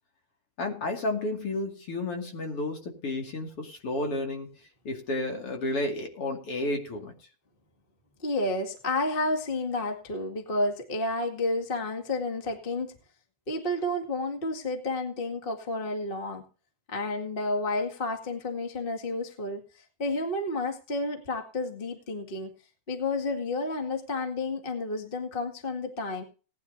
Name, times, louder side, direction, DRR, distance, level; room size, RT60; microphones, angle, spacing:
voice 1, 0.6-4.5 4.8-7.1, left 2 dB, 50° left, 2 dB, 3.2 m, -31 dB
voice 2, 8.2-12.9 13.5-16.4 16.9-22.5 22.9-26.2, left 2 dB, 20° left, 3 dB, 1.6 m, -31 dB
19.0 x 10.5 x 2.8 m, 0.35 s
omnidirectional pair, 3.6 m